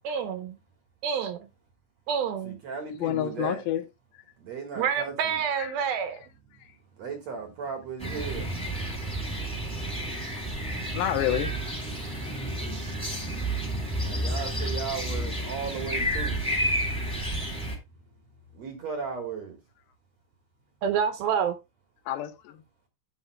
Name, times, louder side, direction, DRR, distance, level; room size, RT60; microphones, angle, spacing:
voice 1, 0.0-0.6 1.0-1.5 2.1-2.6 4.7-6.2 12.7-12.9 20.8-21.5, right 7 dB, 75° right, 2.3 m, -28 dB
voice 2, 2.5-3.6 4.4-5.1 7.0-8.5 9.9-10.3 10.7-11.0 11.9-16.4 18.5-19.5, right 6 dB, 60° right, 1.9 m, -37 dB
voice 3, 3.0-3.8 5.6-5.7 10.9-11.5 22.1-22.6, left 12 dB, 80° left, 2.9 m, -28 dB
sound 1, 8.0-17.8, right 1 dB, ahead, 2.4 m, -31 dB
12.5 x 9.0 x 2.2 m
omnidirectional pair, 5.0 m